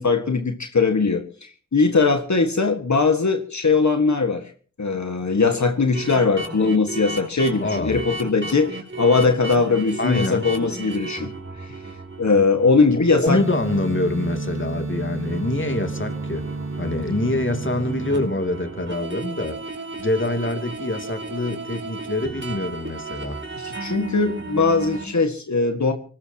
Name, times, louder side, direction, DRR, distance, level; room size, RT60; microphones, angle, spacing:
voice 1, 0.0-4.5 4.8-11.3 11.6-11.8 12.2-13.4 23.6-25.9, left 4 dB, 70° left, 1.7 m, -20 dB
sound 1, 5.9-13.8 14.2-14.4 14.9-25.2, right 3 dB, 40° right, 4.5 m, -35 dB
voice 2, 7.6-8.0 10.0-10.5 13.1-16.5 16.8-19.6 20.0-23.4, left 2 dB, 40° left, 2.8 m, -25 dB
sound 2, 13.3-18.3, right 3 dB, 70° right, 2.1 m, -30 dB
25.0 x 19.0 x 2.9 m
wide cardioid pair, 60°, 29 cm